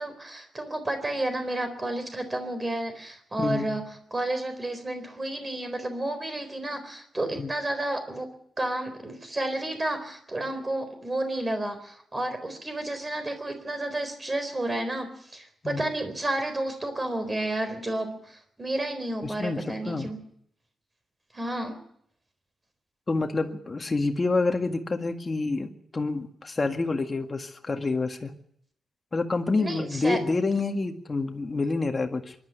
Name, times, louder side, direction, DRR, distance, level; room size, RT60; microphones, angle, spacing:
voice 1, 0.0-3.8 4.1-8.3 8.6-20.2 21.3-21.8 29.6-30.2, right 1 dB, 20° right, 8 dB, 4.0 m, -31 dB
voice 2, 3.4-3.8 7.3-7.5 15.6-15.9 19.2-19.6 19.9-20.1 23.1-28.3 29.1-32.3, left 3 dB, 25° left, 4 dB, 1.9 m, -28 dB
24.0 x 12.0 x 9.3 m, 0.69 s
wide cardioid pair, 145°, 0 cm